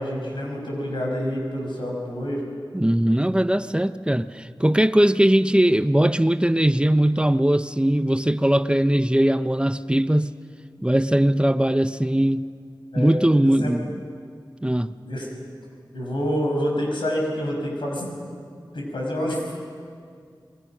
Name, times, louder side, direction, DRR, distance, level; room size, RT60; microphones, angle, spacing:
voice 1, 0.0-2.4 12.9-13.7 15.0-15.3 15.9-18.1 18.7-19.6, equal, 90° left, -1 dB, 6.4 m, -27 dB
voice 2, 2.7-10.3 10.8-12.4 13.0-13.9 14.6-15.0, right 1 dB, 10° right, 12 dB, 0.7 m, -20 dB
27.5 x 23.0 x 6.2 m, 2.2 s
cardioid pair, 40°, 8 cm